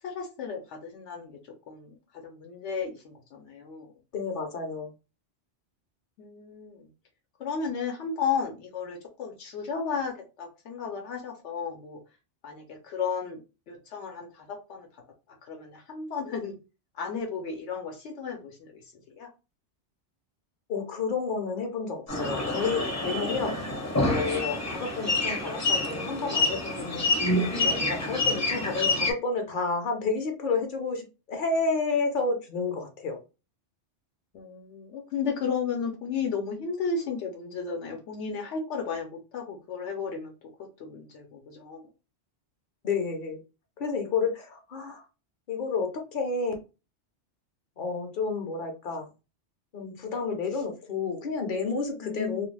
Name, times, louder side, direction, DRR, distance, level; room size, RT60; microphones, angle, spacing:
voice 1, 0.0-1.4 1.7-3.9 6.2-6.9 7.4-12.0 12.4-13.4 13.7-14.9 15.4-16.6 16.9-18.8 19.1-19.3 34.3-40.3 40.8-41.9 52.0-52.5, left 5 dB, 80° left, 1 dB, 0.9 m, -34 dB
voice 2, 4.1-4.9 20.7-23.6 24.0-27.1 27.6-33.2 42.8-43.4 43.8-45.0 45.5-46.5 47.8-49.1 49.7-52.5, left 4 dB, 55° left, 4 dB, 0.7 m, -30 dB
sound 1, 22.1-29.1, left 2 dB, 20° left, 0.5 m, -27 dB
2.4 x 2.2 x 3.2 m, 0.30 s
omnidirectional pair, 1.2 m